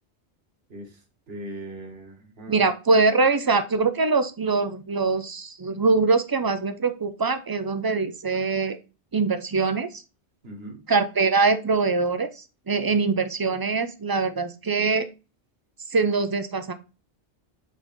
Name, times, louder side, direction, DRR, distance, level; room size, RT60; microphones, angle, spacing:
voice 1, 0.7-2.7 10.4-10.8, right 1 dB, 60° right, 4 dB, 1.8 m, -40 dB
voice 2, 2.5-8.8 9.1-10.0 10.9-15.1 15.9-16.7, right 4 dB, 30° right, 11 dB, 0.5 m, -23 dB
7.9 x 4.1 x 4.4 m, 0.32 s
omnidirectional pair, 1.1 m